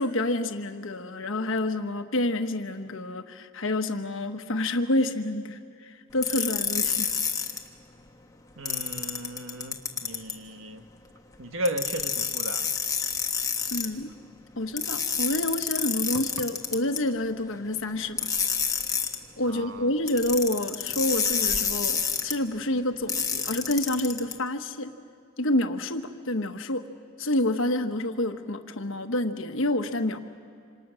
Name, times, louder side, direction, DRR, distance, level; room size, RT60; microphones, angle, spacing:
voice 1, 0.0-7.1 13.7-14.1 14.6-18.3 19.4-24.9 25.4-26.8 27.2-30.2, left 1 dB, 60° left, 7 dB, 1.3 m, -28 dB
sound 1, 6.2-7.6 8.7-10.4 11.6-13.9 14.8-17.0 18.2-19.2 20.1-22.3 23.1-24.3, left 6 dB, 15° left, 1.3 m, -28 dB
voice 2, 8.6-10.8 11.4-12.7 16.1-16.2 19.5-19.9, right 1 dB, 65° right, 7 dB, 1.6 m, -35 dB
27.0 x 27.0 x 6.4 m, 2.4 s
head